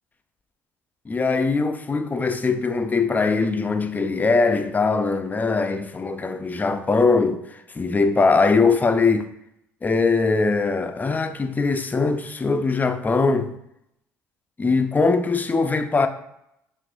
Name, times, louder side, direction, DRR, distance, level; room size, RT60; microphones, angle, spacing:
voice 1, 1.1-9.3 9.8-13.6 14.6-16.1, left 4 dB, 25° left, 0.4 m, -21 dB
5.8 x 2.5 x 2.5 m
hypercardioid pair, 65°, 7 cm